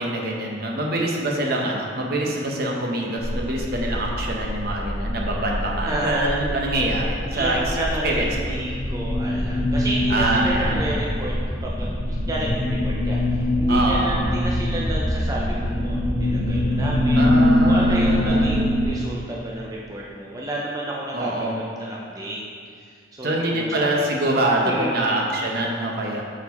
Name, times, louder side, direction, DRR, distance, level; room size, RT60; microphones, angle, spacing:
voice 1, 0.0-7.8 8.0-8.3 10.1-10.9 13.7-14.1 17.2-18.6 21.1-21.6 23.2-26.2, right 1 dB, 55° right, -1 dB, 0.8 m, -25 dB
sound 1, 3.2-18.9, left 1 dB, 25° left, 1.5 m, -23 dB
voice 2, 5.9-6.3 7.3-11.3 11.6-17.2 17.6-22.4 22.8-23.9 24.6-25.1, right 1 dB, 20° right, -4 dB, 0.5 m, -31 dB
6.2 x 4.6 x 4.1 m, 2.2 s
head